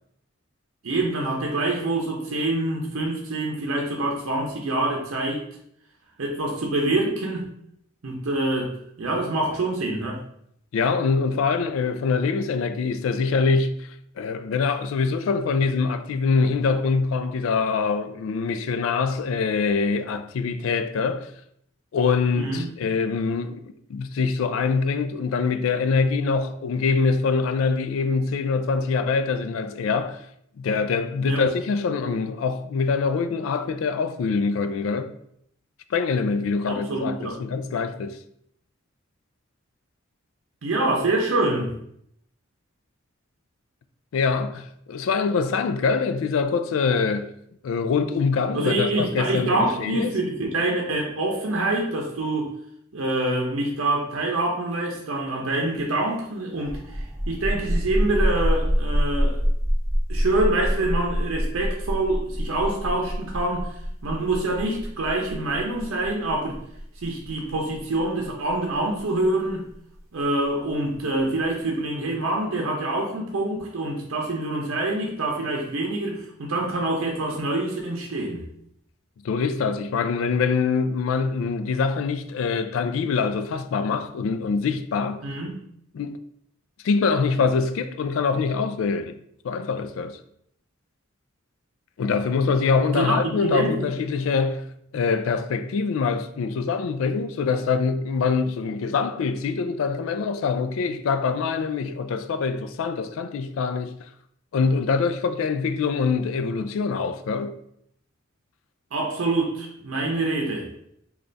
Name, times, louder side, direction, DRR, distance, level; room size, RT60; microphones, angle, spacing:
voice 1, 0.8-5.5 6.2-7.5 8.0-10.2 22.4-22.7 31.3-31.4 36.7-37.4 40.6-41.7 48.5-52.5 52.9-59.4 60.1-63.7 64.0-66.6 67.0-69.6 70.1-78.4 85.2-85.6 92.9-93.9 108.9-110.7, right 2 dB, 80° right, 0.6 m, -26 dB
voice 2, 10.7-13.9 14.2-21.3 21.9-23.6 23.9-30.2 30.6-35.1 35.9-38.2 44.1-47.3 47.6-50.1 79.2-85.3 85.9-86.2 86.8-89.2 89.4-90.2 92.0-94.7 94.9-103.9 104.5-107.6, left 5 dB, 70° left, 0.3 m, -24 dB
sound 1, 56.6-69.9, equal, 15° right, 0.7 m, -26 dB
3.2 x 2.4 x 3.9 m
head